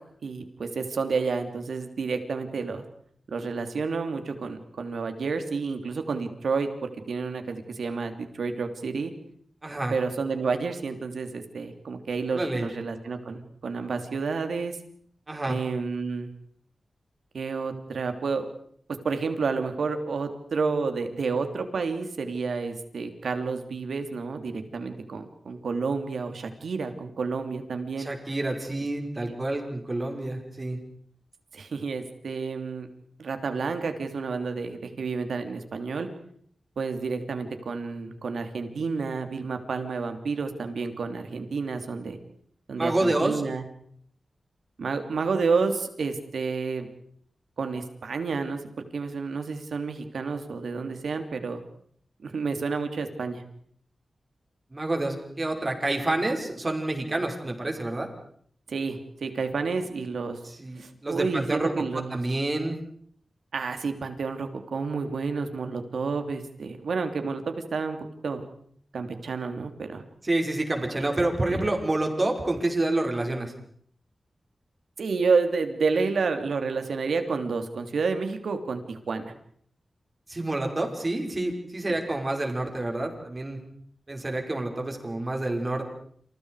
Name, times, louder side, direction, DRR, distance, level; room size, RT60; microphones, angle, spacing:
voice 1, 0.2-2.8 3.3-9.1 9.9-14.8 15.5-16.3 17.3-18.5 19.0-28.1 31.5-32.9 33.2-36.1 36.8-42.2 42.7-43.6 44.8-46.9 47.6-48.6 48.9-51.6 52.2-53.4 58.7-60.4 60.8-62.2 63.5-68.0 68.2-68.5 68.9-70.0 71.5-71.6 75.0-79.3 81.9-82.0, right 4 dB, 85° right, 7 dB, 3.1 m, -30 dB
voice 2, 9.6-10.0 12.3-12.7 15.3-15.6 28.0-30.8 42.8-43.4 54.7-58.1 60.4-61.9 62.1-62.8 70.2-73.5 80.3-83.6 84.1-85.9, right 2 dB, 30° right, 2 dB, 5.8 m, -28 dB
30.0 x 27.5 x 5.0 m, 0.63 s
wide cardioid pair, 95°, 0 cm